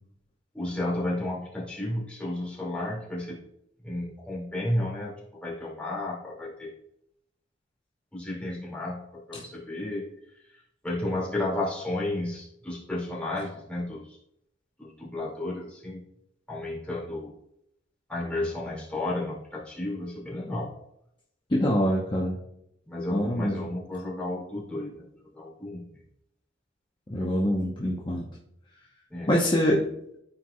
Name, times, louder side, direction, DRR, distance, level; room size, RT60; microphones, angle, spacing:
voice 1, 0.5-3.4 3.8-5.1 5.4-6.7 8.1-10.1 10.8-14.2 14.8-16.0 16.5-17.3 18.1-20.7 22.9-25.1 25.3-25.9 29.1-29.3, left 1 dB, 5° left, -5 dB, 2.3 m, -32 dB
voice 2, 21.5-22.4 23.1-23.7 27.1-28.3 29.3-29.8, equal, 25° left, -3 dB, 0.9 m, -25 dB
13.5 x 4.7 x 2.3 m, 0.77 s
head